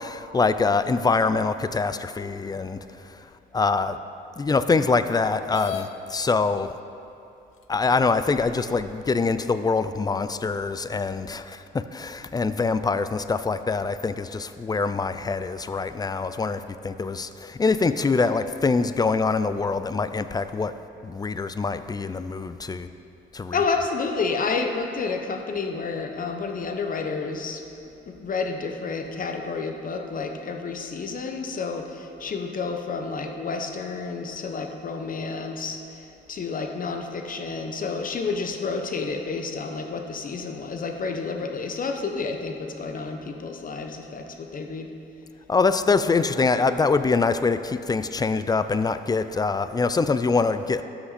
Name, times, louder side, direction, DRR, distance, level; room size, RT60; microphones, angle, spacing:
voice 1, 0.0-3.2 3.5-4.0 4.4-6.7 7.7-20.7 21.0-22.9 23.3-23.6 45.5-50.8, left 4 dB, 20° left, 12 dB, 0.4 m, -24 dB
sound 1, 5.5-5.9 6.9-7.0 7.6-7.7 8.4-9.0, left 11 dB, 85° left, 0.6 m, -36 dB
voice 2, 23.5-27.6 28.1-44.9, left 4 dB, 45° left, 4 dB, 1.0 m, -30 dB
13.0 x 5.9 x 4.2 m, 2.7 s
cardioid pair, 90°, 20 cm